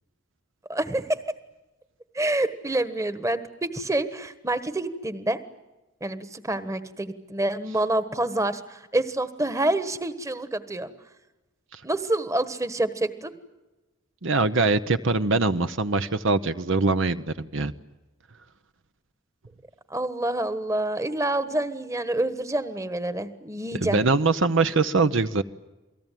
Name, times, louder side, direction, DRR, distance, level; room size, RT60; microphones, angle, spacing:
voice 1, 0.7-1.2 2.1-5.4 6.0-10.9 11.8-13.3 19.9-24.0, right 1 dB, 15° right, 12 dB, 1.4 m, -27 dB
voice 2, 14.2-17.7 23.7-25.4, right 3 dB, 60° right, 10 dB, 0.9 m, -23 dB
28.5 x 19.0 x 9.2 m, 1.1 s
head